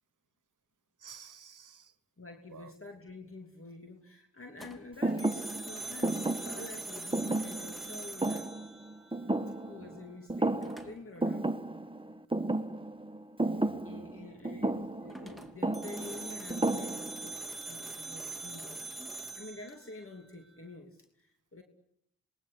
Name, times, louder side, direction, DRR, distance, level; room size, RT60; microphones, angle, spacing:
voice 1, 1.0-1.9 2.5-2.7 9.8-10.0 13.5-14.1 14.6-14.7, right 7 dB, 90° right, 16 dB, 1.0 m, -52 dB
voice 2, 2.2-8.5 9.6-11.8 13.8-21.6, left 2 dB, 45° left, 3 dB, 2.9 m, -48 dB
sound 1, 4.6-9.6 10.6-11.2 15.1-20.6, right 2 dB, ahead, 3.1 m, -43 dB
Thump thud, 5.0-10.0 10.3-10.9 11.2-17.3, right 2 dB, 15° right, 1.4 m, -33 dB
27.0 x 21.0 x 8.4 m, 0.75 s
cardioid pair, 40°, 30 cm